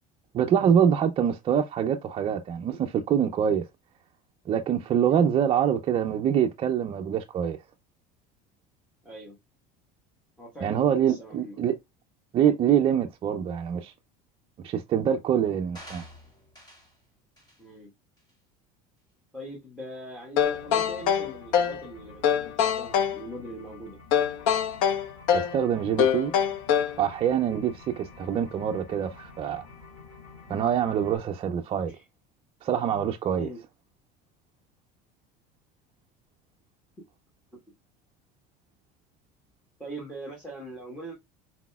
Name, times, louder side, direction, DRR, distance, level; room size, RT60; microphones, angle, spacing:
voice 1, 0.3-3.6 4.5-7.6 10.6-11.7 12.3-13.9 14.6-16.1 25.3-26.3 27.0-29.7 30.5-31.9 32.6-33.5, right 9 dB, 30° right, 0.4 m, -25 dB
voice 2, 9.0-9.3 10.4-11.6 17.6-17.9 19.3-24.0 27.4-27.7 31.9-32.0 33.3-33.6 39.8-41.1, right 1 dB, 5° left, 1.3 m, -41 dB
sound 1, 15.8-17.0 17.4-17.6 18.2-18.3, equal, 25° left, 1.8 m, -48 dB
sound 2, 20.4-21.8 22.2-23.2 24.1-25.6 26.0-27.0, left 8 dB, 80° left, 0.8 m, -24 dB
sound 3, 20.4-31.2, left 4 dB, 55° left, 2.3 m, -49 dB
4.2 x 4.0 x 2.2 m
cardioid pair, 145°, 18 cm